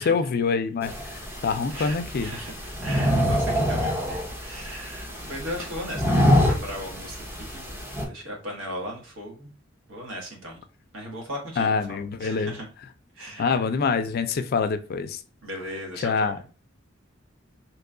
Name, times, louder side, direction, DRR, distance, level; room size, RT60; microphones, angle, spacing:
voice 1, 0.0-2.3 11.6-12.6 13.4-15.2 16.0-16.4, left 5 dB, 50° left, 0.4 m, -25 dB
sound 1, 0.8-8.1, equal, 10° right, 0.7 m, -26 dB
voice 2, 2.2-7.6 8.0-9.5 9.9-10.6 10.9-12.7 13.1-13.5 15.4-16.5, equal, 85° right, 1.2 m, -37 dB
3.0 x 2.3 x 3.6 m
head